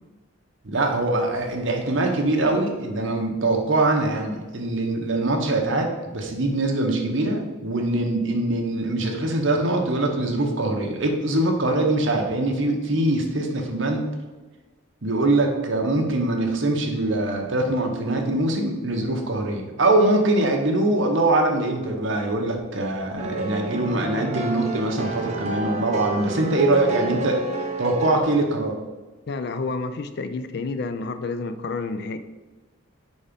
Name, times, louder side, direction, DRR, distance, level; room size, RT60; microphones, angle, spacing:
voice 1, 0.6-14.1 15.0-27.4 27.8-28.8, right 2 dB, 60° right, 2 dB, 1.0 m, -23 dB
sound 1, 23.2-28.2, right 2 dB, 30° right, 0.7 m, -29 dB
voice 2, 29.3-32.2, left 3 dB, 50° left, 10 dB, 0.4 m, -29 dB
4.9 x 4.2 x 5.1 m, 1.2 s
head